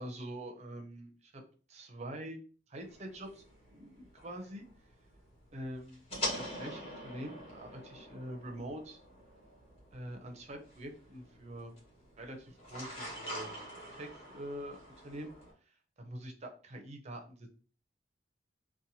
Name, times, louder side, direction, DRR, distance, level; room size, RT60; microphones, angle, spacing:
voice 1, 0.0-1.4 1.7-2.4 2.7-3.4 3.7-4.6 5.5-6.0 6.3-9.0 9.9-11.7 12.2-13.5 13.9-15.3 16.0-17.5, right 1 dB, 35° right, 3 dB, 0.5 m, -45 dB
sound 1, 2.8-15.5, equal, 30° left, 1.1 m, -45 dB
2.9 x 2.1 x 2.6 m, 0.39 s
head